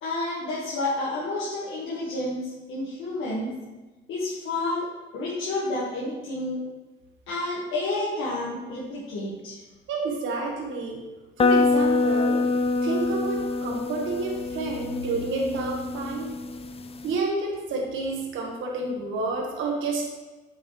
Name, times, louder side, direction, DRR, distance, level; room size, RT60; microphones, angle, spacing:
voice 1, 0.0-3.5 4.1-4.9 5.1-6.6 7.3-9.6, left 2 dB, 80° left, -6 dB, 1.5 m, -30 dB
voice 2, 9.9-11.1 11.4-12.4 12.8-16.3 17.0-20.0, right 3 dB, 80° right, 0 dB, 1.4 m, -29 dB
sound 1, 11.4-17.2, left 3 dB, 30° left, 0.5 m, -25 dB
8.3 x 6.3 x 3.2 m, 1.2 s
cardioid pair, 90°, 20 cm